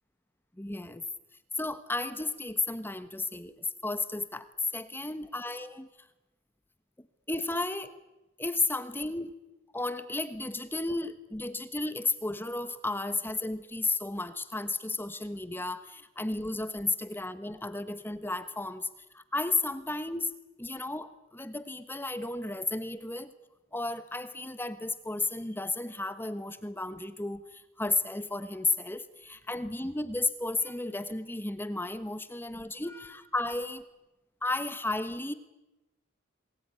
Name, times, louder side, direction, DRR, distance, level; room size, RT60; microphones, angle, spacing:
voice 1, 0.6-1.0 1.6-5.9 7.3-7.9 8.4-9.4 9.7-18.9 19.1-20.3 20.6-23.3 23.7-33.9 34.4-35.3, left 2 dB, 10° left, 12 dB, 1.2 m, -33 dB
27.5 x 20.0 x 9.7 m, 0.99 s
head